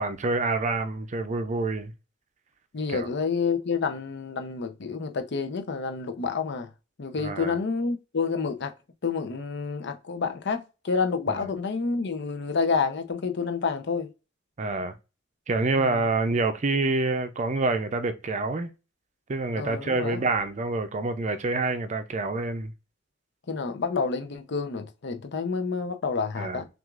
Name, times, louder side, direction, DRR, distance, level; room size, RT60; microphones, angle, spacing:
voice 1, 0.0-1.9 2.9-3.1 7.2-7.6 11.3-11.5 14.6-14.9 15.5-18.7 19.3-22.7 26.4-26.6, right 3 dB, 35° right, 0.5 m, -27 dB
voice 2, 2.7-6.7 7.0-8.7 9.0-14.1 15.8-16.0 19.6-20.2 23.5-26.7, left 5 dB, 60° left, 0.6 m, -29 dB
6.1 x 2.4 x 2.4 m
head